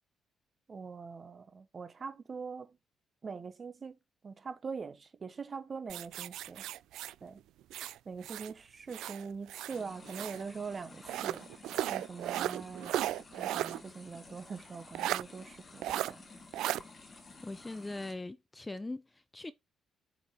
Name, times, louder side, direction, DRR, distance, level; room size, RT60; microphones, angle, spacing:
voice 1, 0.7-2.8 3.2-4.0 4.2-6.6 7.2-7.4 8.1-11.5 11.9-13.0 13.4-16.3, right 5 dB, 40° right, 1.1 m, -43 dB
sound 1, 5.9-8.5 8.9-10.4 11.1-13.8 14.1-14.2 14.9-15.2 15.8-16.1 16.5-16.8, right 13 dB, 85° right, 0.3 m, -36 dB
sound 2, 9.7-18.1, left 3 dB, 35° left, 2.0 m, -53 dB
voice 2, 17.4-19.5, left 2 dB, 15° left, 0.5 m, -41 dB
7.2 x 5.1 x 3.0 m
cardioid pair, 90°, 0 cm